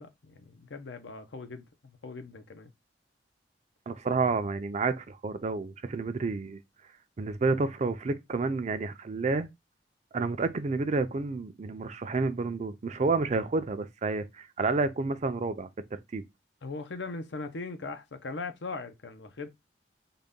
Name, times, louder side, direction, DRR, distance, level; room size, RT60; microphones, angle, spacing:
voice 1, 0.0-2.7 16.6-19.5, left 3 dB, 80° left, 0.6 m, -40 dB
voice 2, 3.9-6.6 7.2-9.5 10.1-16.2, right 3 dB, 40° right, 0.4 m, -30 dB
3.8 x 2.2 x 3.5 m
head